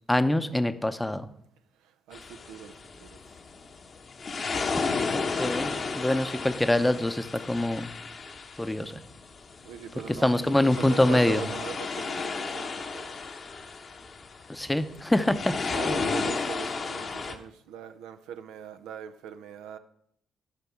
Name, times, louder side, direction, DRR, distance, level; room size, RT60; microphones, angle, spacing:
voice 1, 0.1-1.3 5.1-7.9 8.6-8.9 10.1-11.4 14.5-15.9, left 1 dB, 10° left, 11 dB, 0.7 m, -25 dB
sound 1, 2.1-17.4, left 4 dB, 45° left, 0.9 m, -33 dB
voice 2, 2.1-2.7 3.0-3.2 9.6-13.2 15.7-19.8, right 9 dB, 75° right, 9 dB, 0.5 m, -41 dB
12.5 x 5.2 x 4.5 m, 0.72 s
hypercardioid pair, 45°, 0 cm